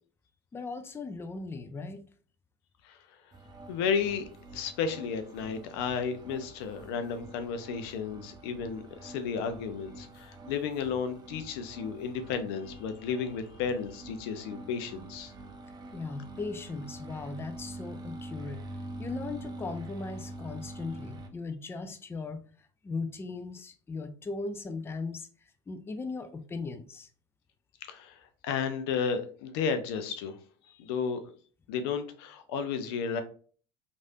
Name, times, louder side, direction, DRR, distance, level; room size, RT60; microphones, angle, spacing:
voice 1, 0.5-2.0 15.9-18.6 19.0-22.4 22.8-25.3 25.7-27.1, left 3 dB, 15° left, 8 dB, 0.4 m, -38 dB
sound 1, 3.3-21.3, right 2 dB, 30° right, 0.6 m, -45 dB
voice 2, 3.7-4.3 4.5-15.3 27.8-30.4 30.7-31.2 31.7-33.2, left 6 dB, 70° left, 9 dB, 0.5 m, -33 dB
3.1 x 2.6 x 2.5 m, 0.43 s
hypercardioid pair, 75°, 13 cm